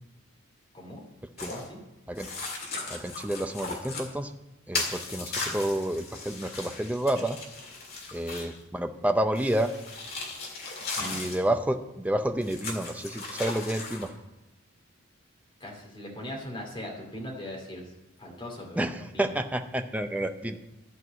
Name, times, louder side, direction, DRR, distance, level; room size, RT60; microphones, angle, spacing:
sound 1, 1.4-1.7 2.2-4.1 4.7-8.6 9.4-11.4 12.4-14.1, left 3 dB, 45° left, 2.0 m, -37 dB
voice 1, 1.5-1.8 11.0-11.2 15.6-17.9 18.2-19.4, left 1 dB, 25° left, -1 dB, 2.5 m, -40 dB
voice 2, 2.9-4.3 4.7-7.4 8.1-9.7 11.0-14.1 18.8-20.6, right 1 dB, 5° right, 7 dB, 0.5 m, -29 dB
12.0 x 4.7 x 7.9 m, 0.95 s
head